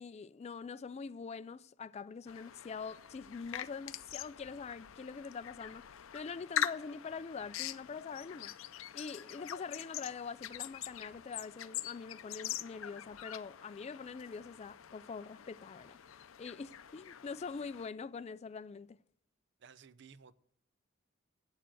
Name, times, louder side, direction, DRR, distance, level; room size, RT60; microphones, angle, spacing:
voice 1, 0.0-5.9 6.1-8.5 8.9-16.0 16.4-19.0, left 5 dB, 30° left, 0.3 m, -44 dB
sound 1, 2.3-17.9, left 10 dB, 85° left, 0.5 m, -44 dB
voice 2, 19.6-20.3, right 6 dB, 60° right, 0.6 m, -56 dB
8.8 x 6.9 x 7.5 m
head